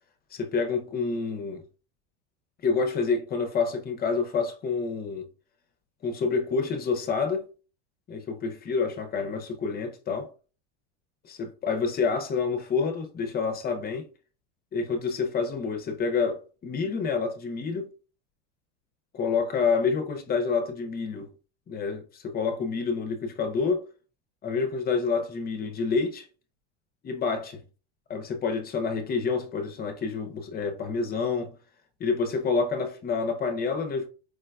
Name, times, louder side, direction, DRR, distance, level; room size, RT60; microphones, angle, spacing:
voice 1, 0.3-1.6 2.6-5.3 6.0-7.5 8.1-10.3 11.3-14.1 14.7-17.9 19.1-21.3 21.7-23.9 24.4-26.3 27.0-27.6 28.1-31.5 32.0-34.1, left 5 dB, 25° left, 0.6 m, -28 dB
4.7 x 2.1 x 2.3 m
supercardioid pair, 105°, 35 cm